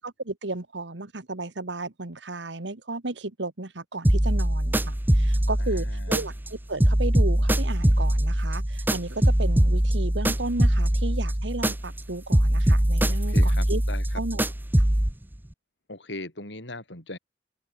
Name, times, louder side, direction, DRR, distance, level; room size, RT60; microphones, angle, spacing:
voice 1, 0.0-13.8 14.2-14.5, right 2 dB, 90° right, 1.8 m, -34 dB
sound 1, 4.0-6.5 6.8-12.0 12.3-15.1, right 1 dB, 10° right, 0.7 m, -22 dB
voice 2, 5.6-6.3 13.1-14.0 15.9-17.2, left 2 dB, 90° left, 7.6 m, -39 dB
head